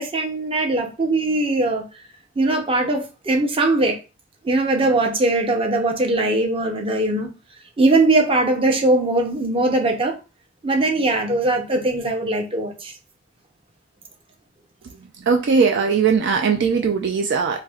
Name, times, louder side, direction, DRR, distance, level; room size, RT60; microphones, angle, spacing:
voice 1, 0.0-1.8 2.4-4.0 4.4-7.3 7.8-10.2 10.6-12.9, right 2 dB, 30° right, 0.7 m, -20 dB
voice 2, 14.8-17.6, right 5 dB, 60° right, 0.4 m, -20 dB
4.1 x 2.1 x 2.4 m
head